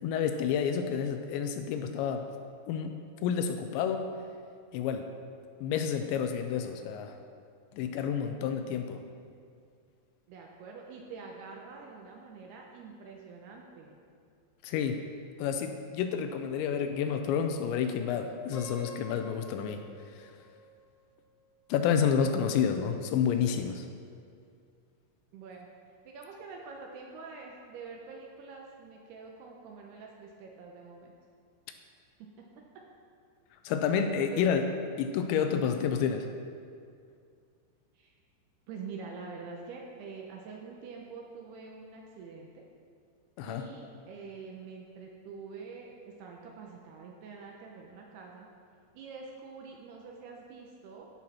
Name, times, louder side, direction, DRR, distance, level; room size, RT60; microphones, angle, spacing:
voice 1, 0.0-2.2 2.7-2.9 3.2-4.1 4.7-5.1 5.6-7.1 7.7-9.0 14.6-15.0 15.4-19.8 20.2-20.3 21.7-23.9 33.7-34.6 35.0-36.3 43.4-43.6, left 7 dB, 85° left, 7 dB, 2.8 m, -29 dB
voice 2, 10.3-14.0 25.3-25.7 26.1-31.1 32.2-32.5 32.7-32.8 34.2-34.4 37.9-38.2 38.7-42.6 43.5-48.5 48.9-51.1, right 4 dB, 75° right, 0 dB, 2.5 m, -46 dB
Piano, 18.5-21.5, right 1 dB, 65° left, 3.7 m, -49 dB
14.5 x 6.2 x 4.2 m, 2.3 s
omnidirectional pair, 5.3 m